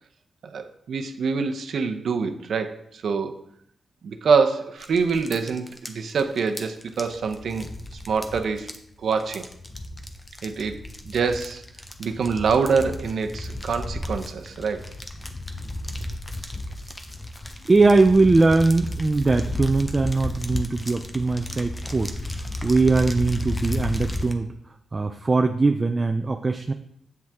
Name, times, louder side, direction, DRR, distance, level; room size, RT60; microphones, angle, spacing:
voice 1, 0.4-3.4 4.0-7.7 8.1-8.7 9.0-9.5 10.4-11.6 12.0-14.9, right 5 dB, 75° right, 6 dB, 0.8 m, -25 dB
sound 1, 4.8-24.3, left 1 dB, 20° left, 0.9 m, -33 dB
voice 2, 17.7-22.2 22.6-24.5 24.9-26.7, right 3 dB, 30° right, 5 dB, 0.5 m, -20 dB
8.0 x 7.5 x 3.6 m, 0.71 s
cardioid pair, 95°, 0 cm